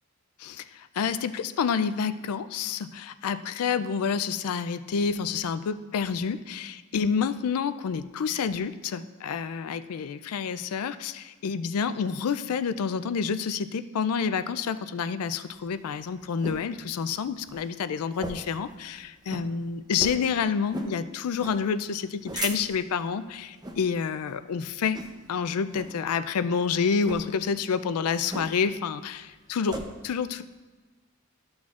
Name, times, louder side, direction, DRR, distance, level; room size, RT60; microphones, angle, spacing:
voice 1, 0.4-25.0 25.3-29.2 29.5-30.4, left 6 dB, 80° left, 13 dB, 0.4 m, -28 dB
sound 1, 15.5-16.7 17.1-17.2 17.4-17.7 18.1-18.6 18.9-19.0 19.3-19.5 20.0-20.3 20.7-21.0 21.4-21.6 22.0-22.9 23.5-23.8 24.2-24.5 24.9-25.3 25.7-26.0 26.9-27.2 28.3-28.8 29.1-29.9, right 2 dB, 20° right, 0.6 m, -37 dB
13.5 x 6.2 x 2.4 m, 1.3 s
head